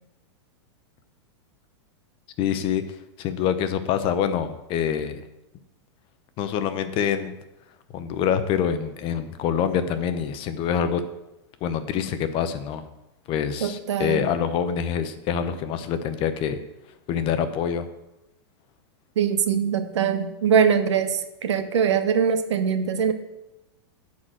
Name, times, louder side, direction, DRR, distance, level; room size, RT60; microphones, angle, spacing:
voice 1, 2.4-5.2 6.4-7.4 7.9-11.0 11.6-12.8 13.3-16.6 17.1-17.9, left 8 dB, 40° left, 10 dB, 0.9 m, -26 dB
voice 2, 13.6-14.3 19.2-23.1, right 7 dB, 85° right, 9 dB, 1.1 m, -22 dB
9.5 x 4.4 x 7.7 m, 0.92 s
hypercardioid pair, 130°, 14 cm